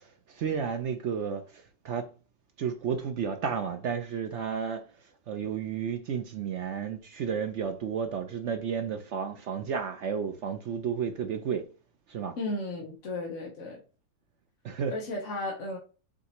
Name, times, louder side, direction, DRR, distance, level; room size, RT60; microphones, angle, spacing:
voice 1, 0.0-2.1 2.6-4.8 5.3-11.7 12.1-12.3 14.6-14.9, right 7 dB, 65° right, 0.7 m, -32 dB
voice 2, 12.4-13.8 14.9-15.8, left 2 dB, 50° left, 1.3 m, -34 dB
6.4 x 2.7 x 2.9 m
omnidirectional pair, 1.7 m